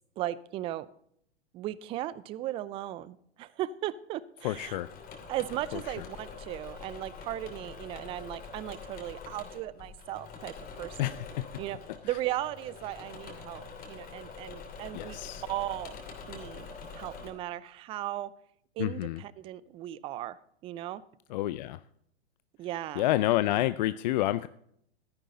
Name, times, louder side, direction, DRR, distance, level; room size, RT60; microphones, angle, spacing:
voice 1, 0.2-0.9 1.5-4.8 5.3-11.1 11.6-11.8 12.0-15.2 15.5-16.0 16.3-16.7 16.9-18.3 18.8-21.0 22.6-23.0, right 14 dB, 20° right, 20 dB, 0.4 m, -37 dB
voice 2, 4.4-4.9 5.7-6.0 11.0-11.5 12.0-12.1 14.9-15.4 18.8-19.2 21.3-21.8 23.0-24.5, left 15 dB, 45° left, 15 dB, 0.5 m, -29 dB
Engine / Mechanisms, 4.4-17.3, left 5 dB, 30° left, 2.9 m, -45 dB
13.5 x 10.5 x 3.8 m, 0.69 s
hypercardioid pair, 110°, 32 cm